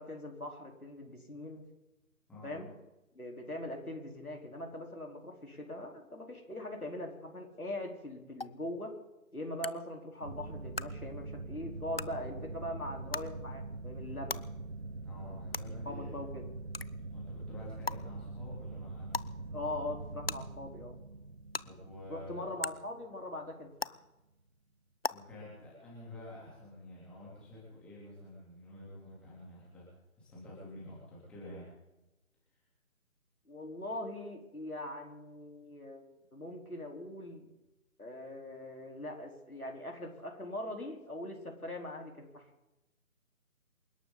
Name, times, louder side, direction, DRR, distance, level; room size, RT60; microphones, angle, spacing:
voice 1, 0.0-1.6 2.4-2.7 3.1-8.9 9.3-14.4 15.9-16.4 19.5-21.0 22.1-24.0 33.5-36.0 36.3-37.4 38.0-42.5, left 1 dB, 80° left, 1 dB, 4.6 m, -41 dB
voice 2, 2.3-2.7 15.0-16.2 17.1-19.2 21.6-22.5 25.1-29.9 30.2-31.6, left 1 dB, ahead, -8 dB, 3.5 m, -49 dB
sound 1, 8.4-8.5 9.6-9.7 10.7-10.8 11.9-12.0 13.1-13.2 14.3-14.4 15.5-15.6 16.7-16.9 17.9-18.0 19.1-19.3 20.3-20.4 21.5-21.6 22.6-22.7 23.8-23.9 25.0-25.1, left 3 dB, 45° left, 0.5 m, -34 dB
sound 2, 10.2-23.5, right 3 dB, 45° right, 1.7 m, -43 dB
28.0 x 12.0 x 4.2 m, 0.99 s
figure-of-eight pair, 155°, 43 cm